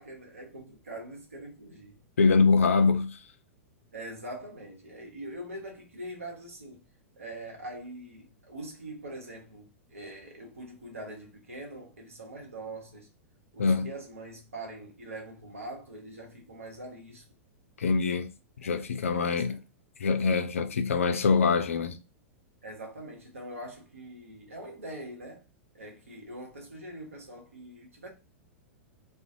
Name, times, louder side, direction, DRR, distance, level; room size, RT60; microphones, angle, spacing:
voice 1, 0.0-2.0 3.9-6.8 7.2-13.1 13.5-17.3 18.6-18.8 19.1-19.6 22.6-25.5 25.7-28.1, right 1 dB, 80° right, 0.9 m, -43 dB
voice 2, 2.2-3.2 13.6-13.9 17.8-18.3 18.6-19.6 20.0-22.0, left 4 dB, 75° left, 0.4 m, -24 dB
2.5 x 2.3 x 2.5 m
figure-of-eight pair, 100°, 7 cm